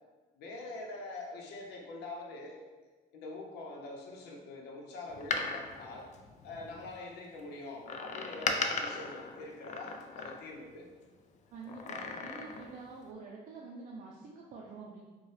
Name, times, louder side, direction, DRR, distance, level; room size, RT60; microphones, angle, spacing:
voice 1, 0.3-2.6 3.1-6.1 6.4-10.9, left 2 dB, 80° left, -1 dB, 0.8 m, -44 dB
Door, 5.1-6.9 7.9-10.7 11.7-12.8 13.1-13.2, left 4 dB, 45° left, 0.4 m, -37 dB
voice 2, 11.5-15.0, right 4 dB, 50° right, -3 dB, 0.5 m, -47 dB
4.4 x 2.3 x 3.2 m, 1.3 s
cardioid pair, 110°, 17 cm